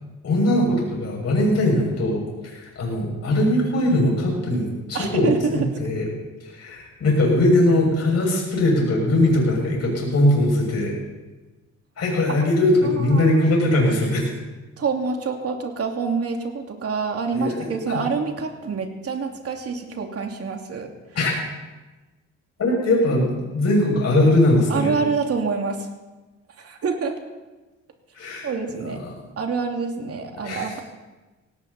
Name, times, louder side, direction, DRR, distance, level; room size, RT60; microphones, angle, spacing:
voice 1, 0.2-5.3 5.8-6.1 6.4-11.0 12.0-14.2 17.3-18.0 21.1-21.3 22.6-24.9 28.1-28.5 28.9-29.1 30.4-30.7, left 1 dB, 55° left, -2 dB, 7.0 m, -20 dB
voice 2, 4.9-5.7 12.8-13.4 14.8-20.9 24.7-25.9 26.6-27.2 28.4-29.0 29.4-30.8, right 5 dB, 50° right, 3 dB, 2.8 m, -26 dB
18.0 x 17.0 x 4.3 m, 1.2 s
cardioid pair, 90°, 30 cm